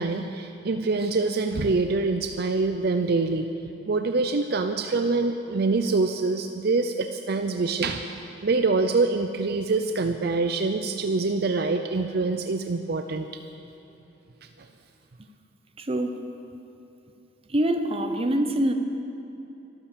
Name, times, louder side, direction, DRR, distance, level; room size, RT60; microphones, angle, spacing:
voice 1, 0.0-3.5 3.9-8.1 8.4-13.3, right 3 dB, 55° right, 7 dB, 0.5 m, -25 dB
voice 2, 15.8-16.2 17.5-18.7, right 1 dB, 30° right, 6 dB, 0.9 m, -24 dB
13.0 x 12.5 x 6.8 m, 3.0 s
head